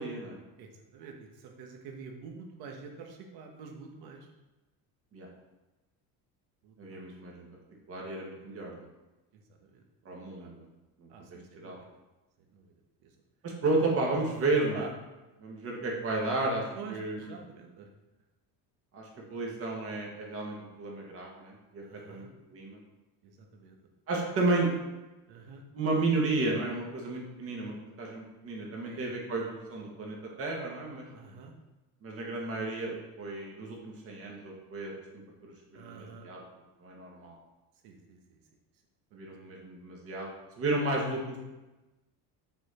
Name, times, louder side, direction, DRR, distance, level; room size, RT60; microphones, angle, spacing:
voice 1, 0.0-0.4 5.1-5.3 6.8-7.5 7.9-8.9 10.0-10.7 11.0-11.8 13.4-14.9 15.4-17.3 18.9-22.8 24.1-24.7 25.7-31.0 32.0-36.4 36.8-37.3 39.1-41.4, right 2 dB, 35° right, -1 dB, 1.6 m, -33 dB
voice 2, 0.6-4.3 6.6-7.2 8.3-8.5 9.3-9.8 10.4-10.5 11.1-11.9 12.4-13.1 14.7-14.9 16.7-17.9 21.8-22.3 23.2-23.8 25.3-25.6 28.8-29.0 31.1-31.5 35.7-36.3 37.8-38.4 39.1-39.4, right 5 dB, 70° right, 3 dB, 1.5 m, -48 dB
6.7 x 6.1 x 4.4 m, 1.1 s
cardioid pair, 170°, 39 cm